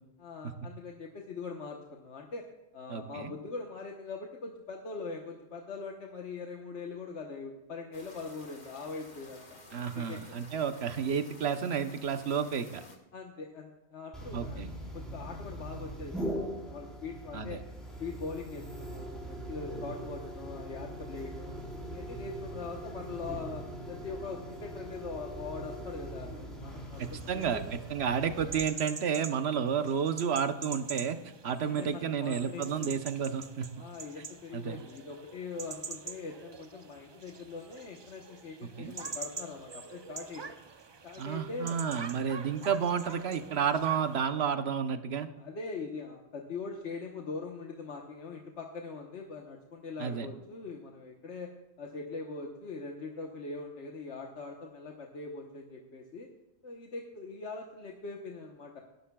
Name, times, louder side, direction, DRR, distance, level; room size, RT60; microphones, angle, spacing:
voice 1, 0.2-2.4 2.7-9.4 9.9-10.2 13.1-14.6 14.9-17.6 18.0-21.6 21.9-27.6 31.5-32.9 33.8-40.5 41.0-41.8 45.4-51.5 51.8-56.3 56.6-58.8, left 4 dB, 80° left, 1 dB, 1.4 m, -42 dB
voice 2, 2.9-3.3 9.7-12.8 14.3-14.7 17.3-17.5 27.0-27.6 27.9-31.2 31.4-33.7 34.5-34.8 38.8-38.9 41.2-45.3 50.0-50.3, right 7 dB, 70° right, 9 dB, 1.1 m, -31 dB
sound 1, 7.9-13.0, left 2 dB, 40° left, 1.7 m, -53 dB
sound 2, 14.1-28.6, right 1 dB, ahead, 3.9 m, -41 dB
sound 3, 26.9-44.2, right 4 dB, 35° right, 0.5 m, -45 dB
19.5 x 11.5 x 2.3 m, 1.1 s
omnidirectional pair, 1.2 m